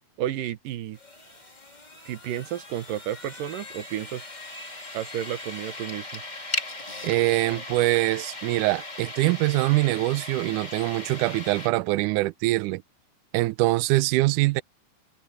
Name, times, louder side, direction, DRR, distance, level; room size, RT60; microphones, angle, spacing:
voice 1, 0.2-1.0 2.1-4.2 4.9-6.2, right 12 dB, 75° right, 2.7 m, -32 dB
sound 1, 0.9-11.7, left 2 dB, 20° left, 1.3 m, -38 dB
voice 2, 7.0-12.8 13.3-14.6, right 19 dB, 90° right, 1.8 m, -23 dB
open air
omnidirectional pair, 4.2 m